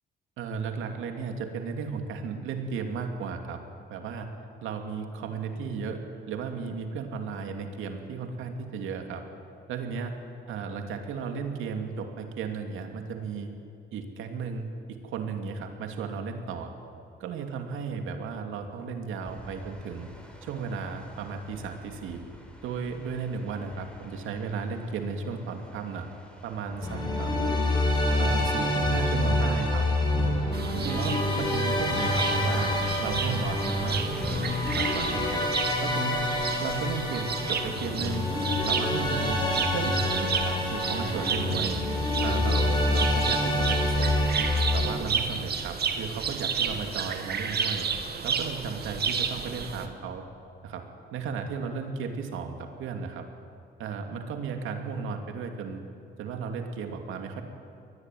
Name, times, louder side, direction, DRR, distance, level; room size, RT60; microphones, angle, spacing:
voice 1, 0.4-3.6 3.9-4.3 4.6-9.2 9.7-10.2 10.5-13.5 13.9-16.7 17.2-20.1 20.4-22.2 22.6-26.1 26.4-27.5 28.2-29.9 30.1-30.4 30.7-32.7 33.0-34.0 34.7-35.4 35.8-36.3 36.6-38.3 38.7-39.4 39.7-41.8 42.2-44.1 44.7-47.9 48.2-50.2 50.6-53.3 53.8-55.8 56.2-57.4, right 5 dB, 85° right, 5 dB, 2.8 m, -34 dB
sound 1, 19.2-35.5, left 1 dB, 5° left, 5.3 m, -42 dB
sound 2, 26.8-44.9, left 1 dB, 20° left, 6.7 m, -27 dB
sound 3, 30.5-49.9, right 6 dB, 55° right, 2.3 m, -32 dB
23.0 x 19.5 x 9.4 m, 2.5 s
cardioid pair, 90°, 20 cm